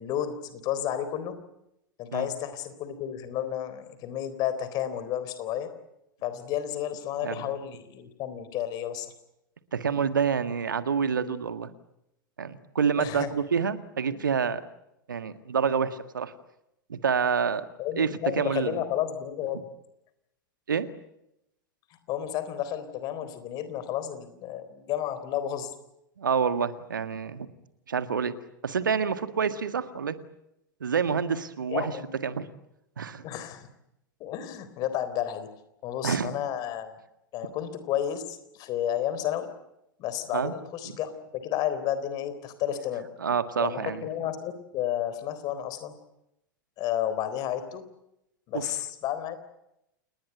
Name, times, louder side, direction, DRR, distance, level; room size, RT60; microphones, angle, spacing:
voice 1, 0.0-1.4 2.0-5.7 6.2-9.1 13.0-13.3 14.1-14.2 17.8-19.7 22.1-25.7 31.7-32.1 33.2-33.7 34.2-35.5 35.8-36.9 37.3-39.5 40.0-43.1 43.6-45.9 46.8-47.8 48.5-49.4, left 11 dB, 35° left, 12 dB, 3.8 m, -31 dB
voice 2, 9.7-11.7 12.4-14.6 15.1-16.3 16.9-17.7 18.0-18.8 19.5-19.6 20.7-20.9 26.2-27.5 27.9-28.3 28.6-30.2 30.8-31.9 32.2-32.5 33.0-33.2 36.0-36.3 40.3-40.5 43.2-44.1 48.5-48.7, right 6 dB, 70° right, 12 dB, 1.7 m, -27 dB
29.0 x 20.0 x 8.0 m, 0.83 s
figure-of-eight pair, 90°, 11 cm